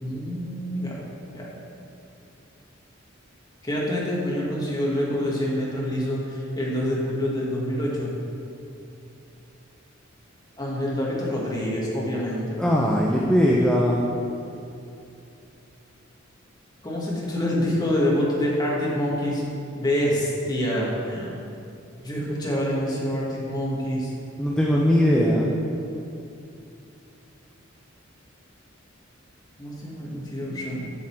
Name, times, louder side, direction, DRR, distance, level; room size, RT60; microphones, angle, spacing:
voice 1, 0.0-1.0 1.3-1.5 3.6-8.1 10.6-12.6 16.8-19.4 19.7-21.4 22.0-24.1 29.6-30.8, equal, 20° left, -5 dB, 1.5 m, -26 dB
voice 2, 12.6-14.0 24.4-25.5, equal, 5° left, -4 dB, 0.5 m, -20 dB
7.4 x 6.6 x 4.4 m, 2.6 s
head